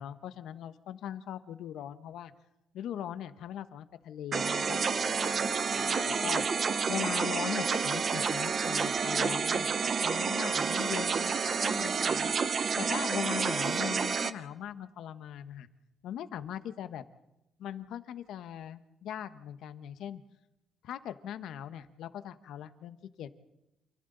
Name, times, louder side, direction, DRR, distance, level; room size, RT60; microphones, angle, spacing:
voice 1, 0.0-2.3 2.7-15.7 16.0-17.0 17.6-20.2 20.8-23.3, left 10 dB, 70° left, 12 dB, 1.2 m, -40 dB
sound 1, 4.3-14.3, right 5 dB, 30° right, 0.8 m, -29 dB
29.0 x 28.0 x 4.0 m, 0.91 s
cardioid pair, 175°, 0 cm